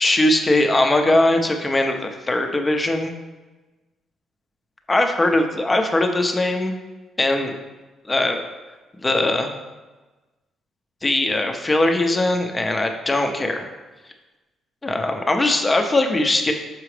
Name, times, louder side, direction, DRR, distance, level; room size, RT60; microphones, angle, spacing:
voice 1, 0.0-3.1 4.9-6.7 7.2-7.5 8.1-8.5 9.0-9.5 11.0-13.7 14.8-16.5, left 2 dB, 20° left, 4 dB, 0.7 m, -20 dB
6.7 x 4.8 x 3.2 m, 1.2 s
cardioid pair, 90°, 0 cm